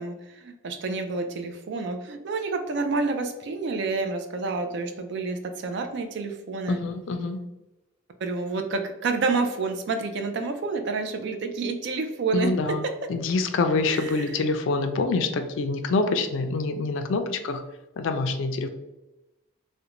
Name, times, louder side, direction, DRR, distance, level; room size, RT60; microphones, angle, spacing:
voice 1, 0.0-6.8 8.2-12.5 12.8-12.9 13.8-14.3, right 4 dB, 60° right, 6 dB, 0.3 m, -29 dB
voice 2, 6.7-7.4 12.3-12.8 13.1-17.6 18.0-18.7, left 3 dB, 65° left, 7 dB, 0.3 m, -26 dB
2.5 x 2.1 x 2.9 m, 1.0 s
head